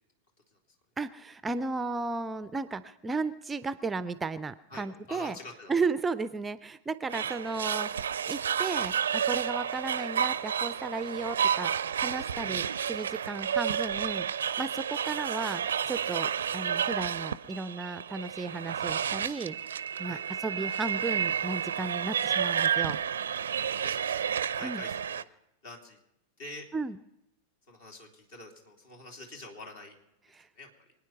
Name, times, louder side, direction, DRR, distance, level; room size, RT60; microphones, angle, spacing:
voice 1, 1.0-5.4 5.7-14.2 14.6-20.2 20.4-23.0 24.6-24.8 26.7-27.0 30.3-30.5, right 3 dB, 15° right, 15 dB, 0.5 m, -34 dB
voice 2, 4.7-5.7 12.4-12.7 19.9-20.2 23.8-25.3 25.6-26.0 26.4-26.7 27.7-29.9 30.5-30.7, left 2 dB, 55° left, 2 dB, 3.0 m, -46 dB
sound 1, 7.1-25.2, right 8 dB, 65° right, 0.5 m, -31 dB
25.0 x 9.6 x 5.7 m, 0.84 s
figure-of-eight pair, 90°, 0 cm